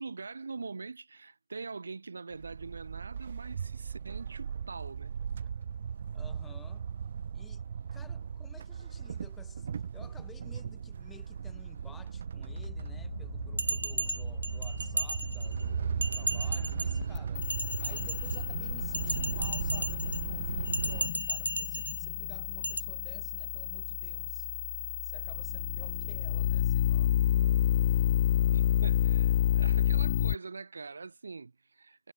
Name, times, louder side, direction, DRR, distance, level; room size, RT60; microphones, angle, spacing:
voice 1, 0.0-5.1 28.5-32.1, right 4 dB, 65° right, 5.6 m, -43 dB
sound 1, 2.3-21.1, right 7 dB, 45° right, 6.0 m, -37 dB
voice 2, 6.1-6.8 7.3-7.6 7.9-17.5 17.8-24.5 25.0-27.2 27.5-27.6, left 6 dB, 5° left, 7.1 m, -55 dB
sound 2, 12.5-30.3, left 11 dB, 35° left, 0.3 m, -31 dB
Bell, 13.6-15.6 16.0-17.0 17.4-18.4 18.9-20.2 20.7-22.0 22.6-22.8, right 2 dB, 85° right, 5.2 m, -35 dB
figure-of-eight pair, 150°, 0 cm